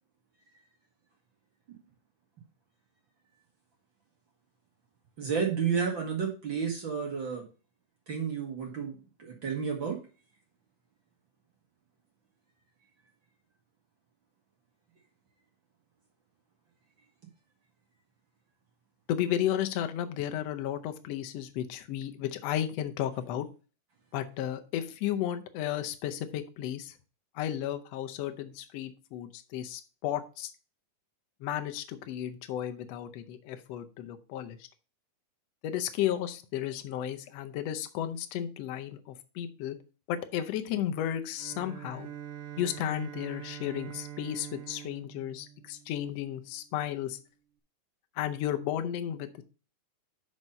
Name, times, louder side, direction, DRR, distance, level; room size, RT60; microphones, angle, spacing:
voice 1, 5.2-7.4 8.1-10.0, right 6 dB, 50° right, 1 dB, 1.6 m, -31 dB
voice 2, 19.1-23.5 24.1-26.9 27.4-30.5 31.4-34.6 35.6-39.8 40.1-42.1 42.6-47.2 48.2-49.4, left 11 dB, 80° left, 7 dB, 1.4 m, -33 dB
Bowed string instrument, 41.4-46.5, right 11 dB, 85° right, 2.4 m, -44 dB
6.3 x 5.5 x 5.3 m, 0.35 s
omnidirectional pair, 3.8 m